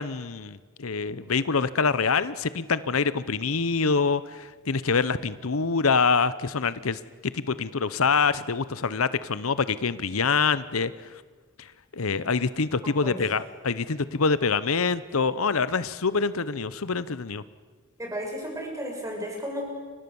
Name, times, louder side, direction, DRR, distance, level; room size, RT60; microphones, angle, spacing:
voice 1, 0.0-7.0 7.3-11.2 11.6-17.4, left 5 dB, 80° left, 16 dB, 0.9 m, -25 dB
voice 2, 12.8-13.2 18.0-19.6, equal, 15° right, 0 dB, 6.9 m, -34 dB
29.5 x 24.5 x 7.1 m, 1.5 s
head